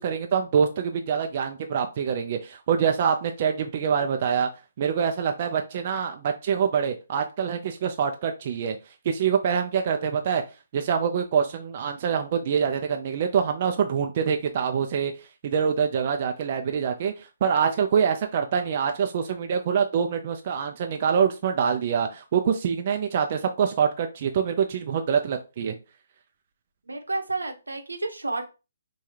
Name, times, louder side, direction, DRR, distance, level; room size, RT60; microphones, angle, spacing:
voice 1, 0.0-4.5 4.8-8.8 9.0-10.4 10.7-15.1 15.4-25.8, right 7 dB, 40° right, 5 dB, 0.4 m, -25 dB
voice 2, 26.9-28.5, right 2 dB, 85° right, 4 dB, 0.9 m, -30 dB
4.7 x 2.3 x 2.8 m, 0.30 s
figure-of-eight pair, 140°, 0 cm